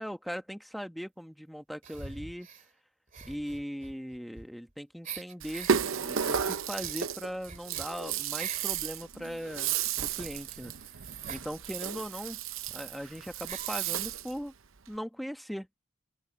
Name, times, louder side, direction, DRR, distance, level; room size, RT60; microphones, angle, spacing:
voice 1, 0.0-2.5 3.3-5.7 6.0-10.8 11.3-12.4 12.7-14.5 14.9-15.7, equal, ahead, 1.3 m, -39 dB
sound 1, 1.8-2.7 3.1-4.7 5.0-5.8 6.3-8.8 9.2-11.5 12.4-12.5 12.7-12.8 13.5-13.8, right 7 dB, 35° right, 2.3 m, -45 dB
Rattle (instrument), 5.4-14.4, right 7 dB, 65° right, 0.8 m, -33 dB
open air
head